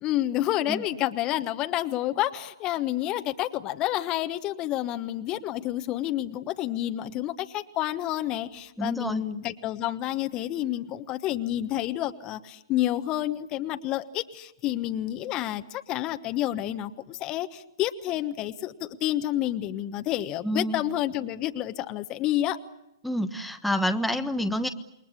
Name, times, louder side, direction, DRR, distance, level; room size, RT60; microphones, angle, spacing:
voice 1, 0.0-22.6, left 13 dB, 30° left, 9 dB, 1.2 m, -29 dB
voice 2, 8.8-9.2 20.4-20.8 23.0-24.7, equal, ahead, 5 dB, 1.3 m, -28 dB
28.5 x 21.5 x 8.3 m, 0.86 s
figure-of-eight pair, 125°, 2 cm